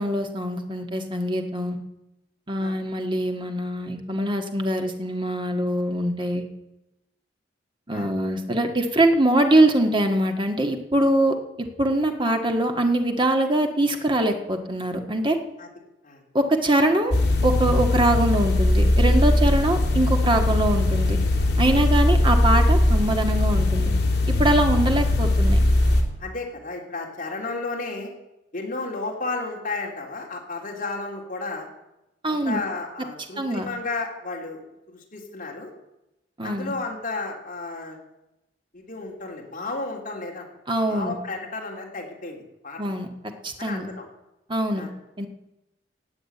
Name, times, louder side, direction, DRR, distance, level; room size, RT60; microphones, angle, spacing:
voice 1, 0.0-1.8 2.5-6.4 7.9-15.4 16.3-17.1 17.4-21.2 21.6-23.9 24.4-25.6 32.2-32.6 33.4-33.7 36.4-36.7 40.7-41.2 42.8-43.1 43.4-43.9 44.5-44.9 45.2-45.3, right 1 dB, 25° right, 4 dB, 1.7 m, -23 dB
sound 1, 17.1-26.0, left 1 dB, 65° left, 2.8 m, -20 dB
voice 2, 26.2-28.1 28.5-31.7 32.3-34.6 34.9-35.7 36.4-38.0 38.7-40.5 40.9-43.0 43.6-44.0 44.7-44.9, left 3 dB, 45° left, 0 dB, 3.4 m, -33 dB
17.5 x 7.7 x 8.9 m, 0.93 s
head